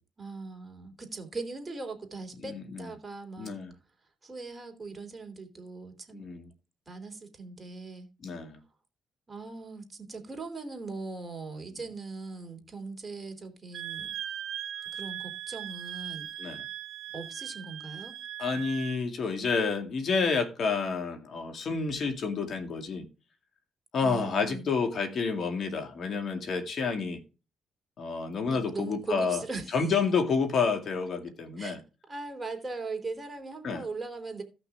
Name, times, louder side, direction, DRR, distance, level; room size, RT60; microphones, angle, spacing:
voice 1, 0.2-3.6 4.2-6.3 6.9-8.1 9.3-14.1 14.9-16.3 17.1-18.2 24.0-24.7 28.5-29.8 31.6-31.8 32.1-34.4, right 3 dB, 20° right, 3.1 m, -40 dB
voice 2, 2.4-2.9 3.4-3.7 6.1-6.5 8.2-8.6 16.4-16.7 18.4-23.0 23.9-27.2 28.0-29.4 29.7-31.8 33.6-33.8, left 5 dB, 55° left, 2.3 m, -29 dB
Wind instrument woodwind instrument, 13.7-19.0, right 11 dB, 75° right, 0.9 m, -39 dB
16.5 x 6.0 x 3.6 m
cardioid pair, 90°, 0 cm